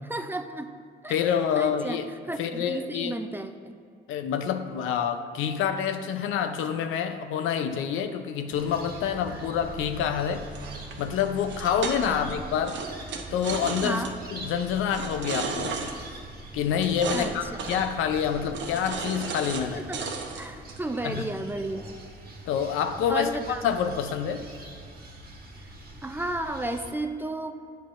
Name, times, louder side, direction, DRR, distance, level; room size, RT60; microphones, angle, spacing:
voice 1, 0.1-0.7 1.0-1.2 1.6-2.0 2.3-3.8 11.9-12.3 13.8-14.1 17.1-17.4 19.7-20.1 20.4-22.0 23.1-23.6 26.0-27.5, right 2 dB, 10° right, 7 dB, 0.4 m, -33 dB
voice 2, 1.1-2.1 2.4-3.2 4.1-10.5 11.0-12.8 13.3-14.0 14.3-15.8 16.5-19.8 21.0-21.3 22.5-23.3 23.6-24.5, left 8 dB, 85° left, 8 dB, 0.5 m, -27 dB
sound 1, 8.5-26.9, right 2 dB, 50° right, 1.3 m, -43 dB
sound 2, 10.5-12.3 12.7-14.1 14.9-15.9 16.8-17.3 17.6-17.9 18.5-19.6 19.9-20.8, right 5 dB, 65° right, 0.8 m, -34 dB
8.2 x 8.2 x 2.5 m, 2.2 s
cardioid pair, 90°, 20 cm